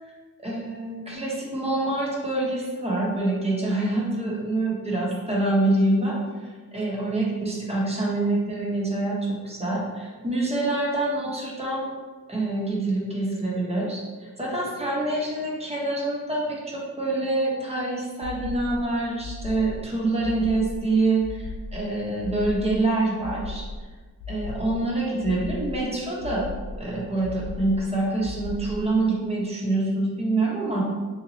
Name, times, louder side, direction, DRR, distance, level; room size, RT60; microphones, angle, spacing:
voice 1, 0.4-6.2 6.7-11.8 12.3-23.7 24.3-26.5 26.8-30.8, right 2 dB, 20° right, -4 dB, 0.9 m, -26 dB
sound 1, 18.2-18.8 19.2-19.8 20.2-20.8 21.2-21.8 22.2-22.8 23.2-23.8 24.2-24.8 25.2-25.8 26.2-26.8 27.2-27.8 28.2-28.9, left 2 dB, 85° left, 0.5 m, -36 dB
3.8 x 2.7 x 3.0 m, 1.4 s
cardioid pair, 80°, 33 cm